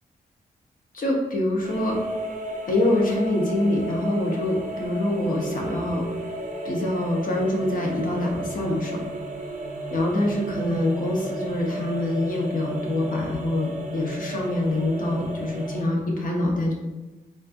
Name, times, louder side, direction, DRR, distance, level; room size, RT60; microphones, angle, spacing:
voice 1, 0.9-2.0 2.7-6.0 6.6-9.0 9.9-16.7, left 1 dB, 60° left, -1 dB, 0.9 m, -25 dB
sound 1, 1.6-15.8, right 1 dB, 55° right, 0.6 m, -33 dB
4.2 x 2.5 x 2.5 m, 1.1 s
cardioid pair, 75°, 16 cm